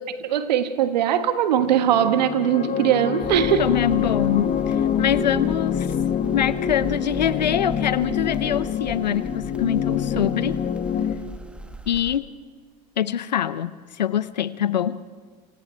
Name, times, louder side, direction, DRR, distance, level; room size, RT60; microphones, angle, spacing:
voice 1, 0.0-3.7, right 10 dB, 80° right, 10 dB, 1.5 m, -21 dB
sound 1, 1.6-11.1, left 8 dB, 40° left, 1.9 m, -26 dB
sound 2, 3.2-12.2, right 1 dB, 5° right, 1.6 m, -38 dB
voice 2, 3.6-5.9 6.3-10.6 11.9-12.3 13.0-15.0, left 10 dB, 90° left, 17 dB, 0.8 m, -24 dB
28.5 x 26.0 x 4.5 m, 1.5 s
hypercardioid pair, 80°, 21 cm